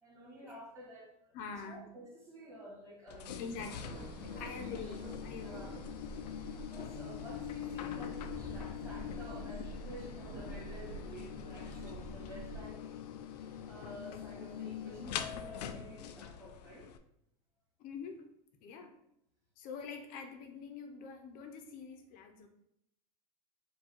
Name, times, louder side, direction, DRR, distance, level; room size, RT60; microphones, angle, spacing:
voice 1, 0.0-1.3 1.6-3.4 4.3-4.9 5.4-5.8 6.5-8.2 8.5-16.9 18.7-18.9, equal, 15° right, -5 dB, 1.7 m, -51 dB
voice 2, 1.3-1.8 3.4-4.1 4.4-5.8 17.8-18.3 18.6-18.9 19.6-22.5, left 5 dB, 45° left, 6 dB, 0.6 m, -45 dB
Elevator Movement and Ding, 3.1-17.0, left 9 dB, 90° left, 0.4 m, -43 dB
sound 1, 3.5-12.7, right 2 dB, 45° right, 1.1 m, -48 dB
4.5 x 2.3 x 4.4 m, 0.78 s
supercardioid pair, 125°, 20 cm